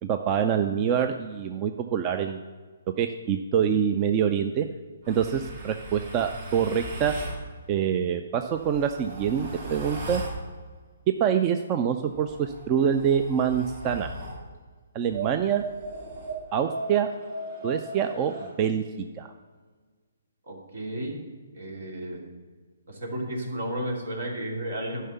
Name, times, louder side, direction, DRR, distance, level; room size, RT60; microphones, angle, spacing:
voice 1, 0.0-2.4 3.0-4.7 5.1-7.1 7.7-10.2 11.2-14.1 14.9-15.6 16.5-17.1 17.6-18.8 19.2-19.3, right 8 dB, 25° right, 7 dB, 0.5 m, -25 dB
sound 1, 5.0-7.4 8.4-10.4 12.1-14.4 15.1-18.5, right 2 dB, 55° right, 2.9 m, -38 dB
voice 2, 20.5-21.2 21.5-22.2 22.9-25.1, right 1 dB, 75° right, 0 dB, 2.9 m, -33 dB
11.0 x 5.6 x 6.9 m, 1.5 s
hypercardioid pair, 145°, 0 cm